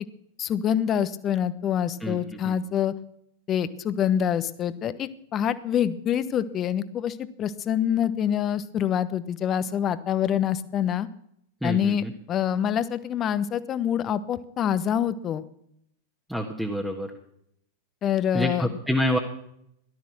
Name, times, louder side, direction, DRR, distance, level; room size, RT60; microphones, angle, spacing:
voice 1, 0.4-2.9 3.5-11.1 11.6-15.4 18.0-18.7, left 9 dB, 30° left, 14 dB, 1.0 m, -26 dB
voice 2, 11.6-12.1 16.3-17.1 18.3-19.2, equal, ahead, 1 dB, 1.7 m, -27 dB
17.5 x 12.5 x 6.3 m, 0.73 s
figure-of-eight pair, 90°, 0 cm